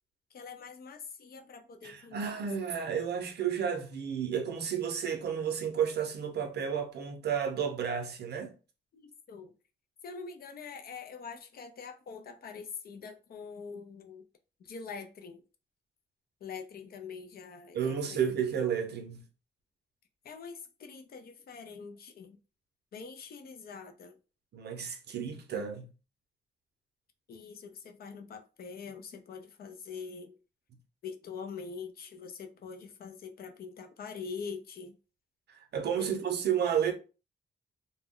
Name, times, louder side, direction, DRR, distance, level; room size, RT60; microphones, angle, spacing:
voice 1, 0.3-2.4 8.9-9.5 10.0-14.2 14.6-15.4 16.4-18.2 20.2-22.4 22.9-24.1 27.3-30.3 31.0-34.9 36.0-36.1, left 5 dB, 50° left, 0.4 m, -44 dB
voice 2, 1.8-8.5 17.7-19.2 24.5-25.8 35.5-36.9, right 8 dB, 55° right, 0.6 m, -32 dB
2.2 x 2.0 x 3.5 m
wide cardioid pair, 170°, 20 cm